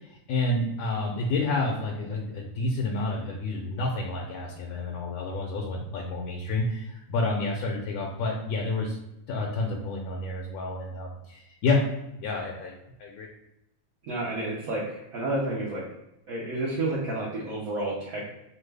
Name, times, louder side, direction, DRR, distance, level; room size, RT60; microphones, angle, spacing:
voice 1, 0.3-9.0 9.3-11.9 12.1-13.3, left 2 dB, 85° left, -1 dB, 1.1 m, -29 dB
voice 2, 14.0-16.0 16.3-18.3, right 2 dB, 75° right, -5 dB, 1.1 m, -30 dB
3.0 x 2.3 x 3.2 m, 0.89 s
omnidirectional pair, 1.5 m